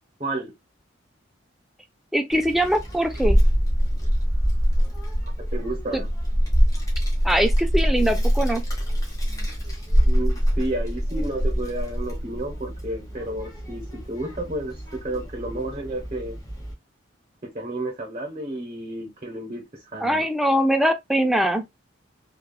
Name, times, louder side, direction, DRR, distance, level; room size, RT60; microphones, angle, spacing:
voice 1, 0.2-0.5 5.5-6.1 10.1-16.4 17.4-20.3, right 1 dB, 30° right, 0.8 m, -31 dB
voice 2, 2.1-3.4 5.9-6.0 7.2-8.6 20.0-21.6, equal, ahead, 0.4 m, -22 dB
Child speech kid speaking, 2.3-16.7, equal, 20° left, 1.0 m, -24 dB
3.3 x 2.3 x 2.2 m
head